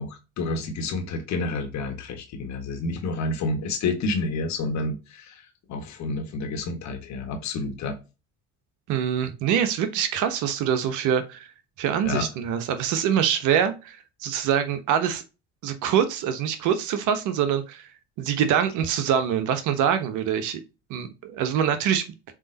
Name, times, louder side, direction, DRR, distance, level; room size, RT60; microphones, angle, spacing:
voice 1, 0.0-5.4 5.7-8.0 12.0-12.3, left 3 dB, 50° left, 6 dB, 1.6 m, -29 dB
voice 2, 8.9-11.5 11.8-15.2 15.6-17.9 18.2-20.6 20.9-22.0, right 8 dB, 60° right, 9 dB, 1.2 m, -24 dB
7.4 x 3.3 x 4.0 m, 0.29 s
figure-of-eight pair, 55°, 35 cm